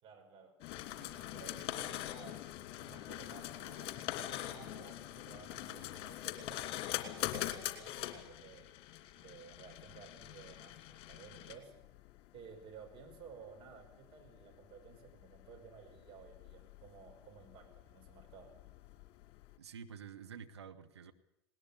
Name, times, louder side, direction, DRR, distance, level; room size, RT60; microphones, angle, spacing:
voice 1, 0.0-0.6 1.0-8.8 9.1-11.8 12.3-18.6, right 6 dB, 35° right, 4 dB, 5.2 m, -55 dB
sound 1, 0.6-19.5, left 14 dB, 45° left, 2.6 m, -44 dB
voice 2, 19.6-21.1, right 7 dB, 75° right, 7 dB, 1.8 m, -49 dB
20.0 x 19.0 x 8.7 m, 0.85 s
figure-of-eight pair, 90°, 14 cm